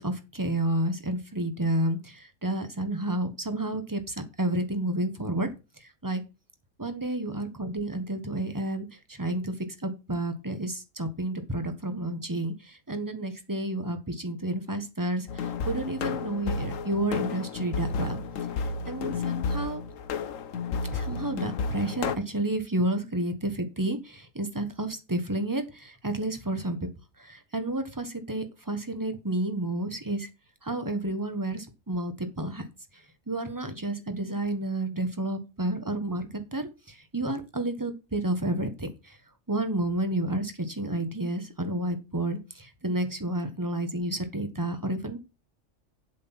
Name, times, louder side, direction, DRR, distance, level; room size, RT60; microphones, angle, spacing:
voice 1, 0.0-5.5 5.8-6.2 6.8-18.2 18.9-19.8 20.9-26.9 27.2-30.3 30.6-32.6 32.9-39.2 39.5-45.2, right 1 dB, 15° right, 8 dB, 1.3 m, -31 dB
sound 1, 15.3-22.2, left 5 dB, 80° left, 1.2 m, -32 dB
8.1 x 7.7 x 5.8 m, 0.29 s
omnidirectional pair, 1.3 m